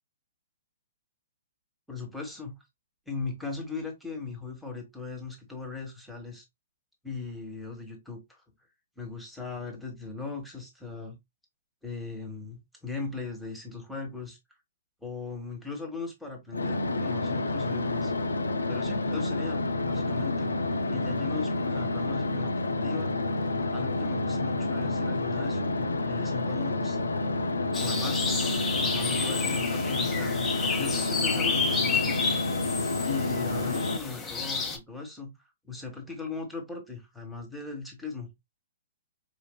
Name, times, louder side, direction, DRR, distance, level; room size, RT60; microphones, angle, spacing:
voice 1, 1.9-2.6 3.1-6.4 7.0-8.4 9.0-11.2 11.8-14.4 15.0-18.1 18.7-20.5 20.9-23.1 23.7-27.2 27.8-28.4 28.8-30.5 30.8-32.6 33.0-35.3 35.6-38.3, left 4 dB, ahead, 1.3 m, -38 dB
sound 1, 16.5-34.0, left 2 dB, 85° left, 0.4 m, -29 dB
sound 2, 27.7-34.8, left 4 dB, 15° left, 1.0 m, -31 dB
5.0 x 2.5 x 2.2 m
figure-of-eight pair, 120°, 0 cm